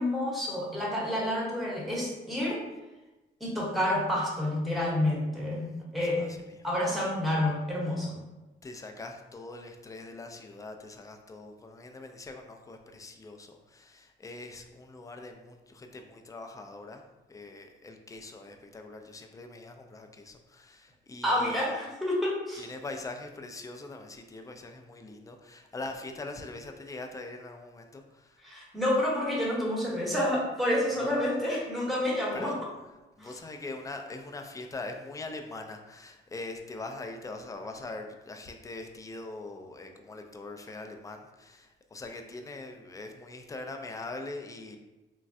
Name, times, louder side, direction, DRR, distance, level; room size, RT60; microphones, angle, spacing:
voice 1, 0.0-2.6 3.4-6.3 6.6-8.2 21.2-22.6 28.4-32.5 33.2-33.3, left 1 dB, ahead, -4 dB, 0.9 m, -29 dB
voice 2, 6.2-6.6 7.0-7.1 8.6-21.6 22.6-28.5 31.0-31.2 32.3-32.6 33.2-44.8, left 2 dB, 15° left, 4 dB, 0.3 m, -42 dB
3.1 x 2.2 x 2.6 m, 1.1 s
cardioid pair, 90°, 20 cm